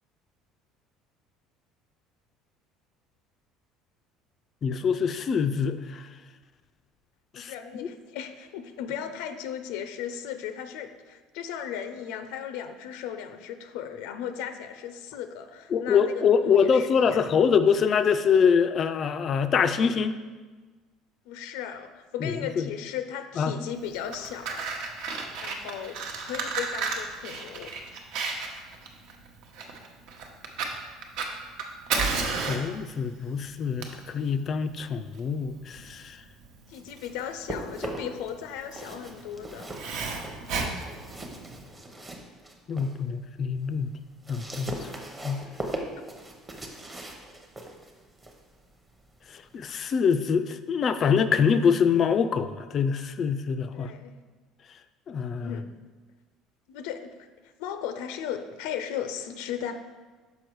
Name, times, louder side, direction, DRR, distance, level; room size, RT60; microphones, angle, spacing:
voice 1, 4.6-6.0 7.4-7.5 15.7-20.2 22.2-22.6 23.4-23.5 32.3-36.2 42.7-43.9 44.3-44.9 45.2-45.4 49.5-53.9 55.1-55.5, left 6 dB, 30° left, 11 dB, 0.3 m, -24 dB
voice 2, 7.3-17.2 21.3-24.7 25.4-27.7 36.7-39.7 46.0-46.1 53.7-54.2 55.4-55.7 56.7-57.1 57.6-59.7, left 9 dB, 85° left, 9 dB, 0.5 m, -36 dB
Fire, 23.9-41.7, right 4 dB, 65° right, 0.9 m, -34 dB
sound 1, 36.5-38.3 38.6-43.0 43.4-50.0, right 1 dB, 15° right, 0.7 m, -40 dB
6.3 x 5.3 x 4.6 m, 1.3 s
cardioid pair, 160°, 0 cm